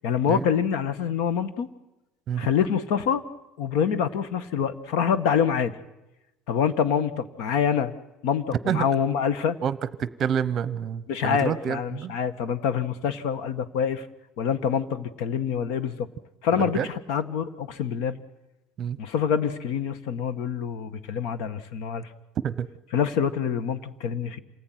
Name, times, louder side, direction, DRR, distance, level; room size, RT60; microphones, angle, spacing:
voice 1, 0.0-1.7 2.4-3.2 3.6-5.7 6.5-7.9 8.2-9.6 11.1-14.1 14.4-16.1 16.4-18.2 19.0-22.1 22.9-24.4, left 7 dB, 60° left, 13 dB, 1.7 m, -26 dB
voice 2, 9.6-12.1 16.5-16.9 18.8-19.0 22.4-22.7, right 8 dB, 30° right, 16 dB, 0.9 m, -28 dB
28.0 x 19.5 x 9.4 m, 1.0 s
cardioid pair, 180°, 0 cm